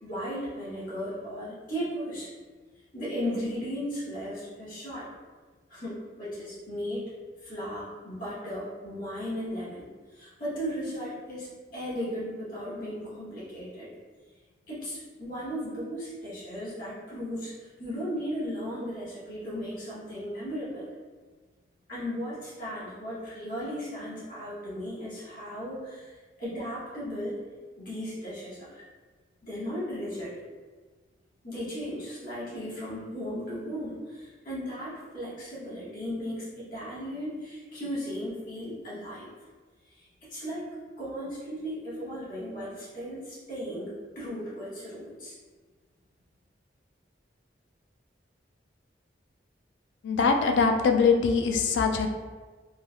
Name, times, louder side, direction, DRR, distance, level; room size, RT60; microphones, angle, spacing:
voice 1, 0.0-2.3 2.9-5.1 5.7-7.0 7.4-13.9 14.7-20.9 21.9-27.4 27.8-28.8 29.4-30.3 31.4-39.3 39.9-40.7 41.0-45.3, equal, 50° left, -8 dB, 1.2 m, -36 dB
voice 2, 50.0-52.1, left 5 dB, 80° left, 5 dB, 0.3 m, -22 dB
3.2 x 2.3 x 2.2 m, 1.4 s
head